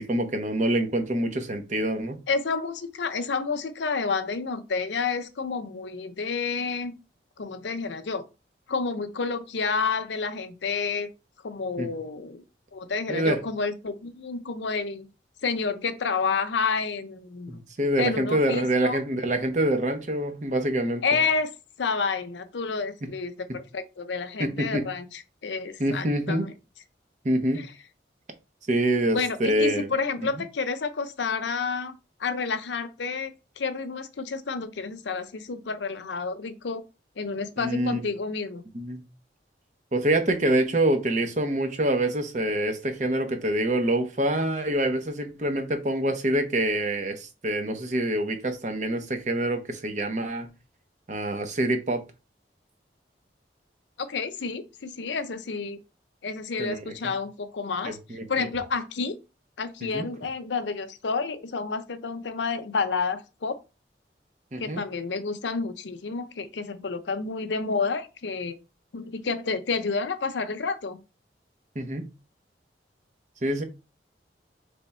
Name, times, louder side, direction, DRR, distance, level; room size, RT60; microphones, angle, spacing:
voice 1, 0.0-2.2 11.8-11.9 13.1-13.4 17.5-21.2 23.0-23.1 24.4-24.9 25.8-26.5 27.2-27.7 28.7-29.9 30.3-30.4 37.6-38.0 38.7-39.0 39.9-50.5 51.1-52.0 56.6-57.1 57.8-58.5 59.8-60.1 64.5-64.8 71.7-72.1 73.4-73.6, right 1 dB, 40° right, 0.8 m, -26 dB
voice 2, 2.3-6.9 7.4-8.2 8.7-11.1 11.4-12.4 12.7-15.1 15.4-17.6 18.0-19.0 21.0-21.5 21.8-26.5 27.6-27.7 29.1-36.8 37.2-38.6 54.0-55.8 56.2-58.0 58.3-59.2 59.6-63.6 64.6-68.5 68.9-71.0, left 4 dB, 85° left, 0.6 m, -30 dB
3.5 x 3.4 x 4.2 m
head